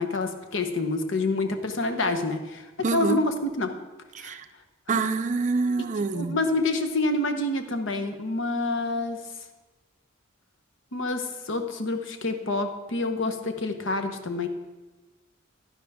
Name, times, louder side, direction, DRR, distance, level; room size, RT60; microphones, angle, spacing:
voice 1, 0.0-3.7 4.2-4.3 5.8-9.2 10.9-14.5, left 2 dB, 70° left, 7 dB, 0.9 m, -27 dB
voice 2, 2.8-3.2 4.2-4.4 4.9-6.4, right 4 dB, 35° right, 10 dB, 0.4 m, -26 dB
11.0 x 10.0 x 3.5 m, 1.2 s
head